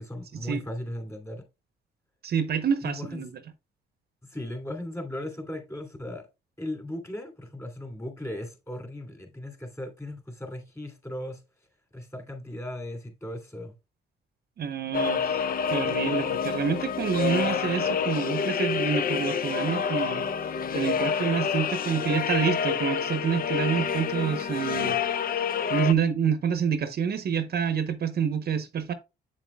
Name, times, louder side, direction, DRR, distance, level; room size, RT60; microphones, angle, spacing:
voice 1, 0.0-1.5 2.8-3.2 4.2-6.3 6.6-11.4 11.9-13.7, left 1 dB, 15° left, 2.7 m, -37 dB
voice 2, 2.2-3.3 14.6-15.4 15.7-20.3 20.7-25.0 25.7-28.9, right 7 dB, 50° right, 0.8 m, -27 dB
sound 1, 14.9-25.9, left 7 dB, 50° left, 0.6 m, -28 dB
7.9 x 7.2 x 2.2 m
cardioid pair, 90°, 20 cm